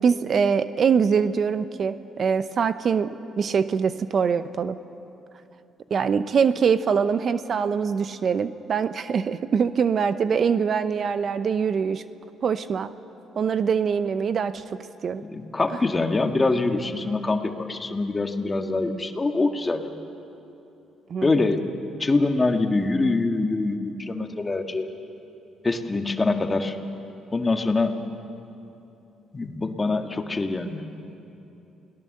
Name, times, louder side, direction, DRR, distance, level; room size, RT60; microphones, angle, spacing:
voice 1, 0.0-4.8 5.9-12.0 12.4-12.9 13.4-14.6 15.0-15.2 21.1-21.5, right 6 dB, 50° right, 12 dB, 0.8 m, -23 dB
voice 2, 15.2-19.9 21.2-21.6 22.0-24.9 25.6-26.8 27.3-28.0 29.3-30.8, left 3 dB, 25° left, 5 dB, 1.7 m, -24 dB
29.0 x 18.5 x 6.7 m, 3.0 s
supercardioid pair, 75°, 0 cm